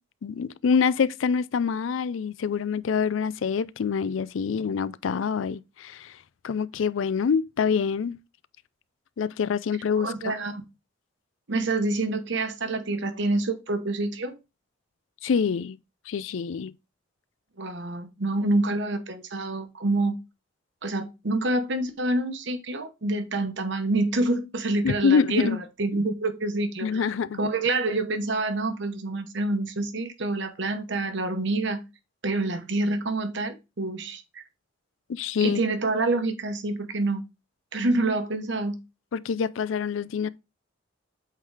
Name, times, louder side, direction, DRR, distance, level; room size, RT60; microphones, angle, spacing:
voice 1, 0.2-6.1 6.4-8.2 9.2-10.4 15.2-15.8 16.1-16.7 24.8-25.6 26.8-27.5 35.1-35.6 39.1-40.3, left 6 dB, 75° left, 0.4 m, -26 dB
voice 2, 10.0-10.6 11.5-14.4 17.6-20.2 20.8-27.1 27.4-31.8 32.2-34.4 35.4-37.2 37.7-38.8, right 2 dB, 60° right, 1.0 m, -27 dB
8.2 x 3.9 x 3.3 m
head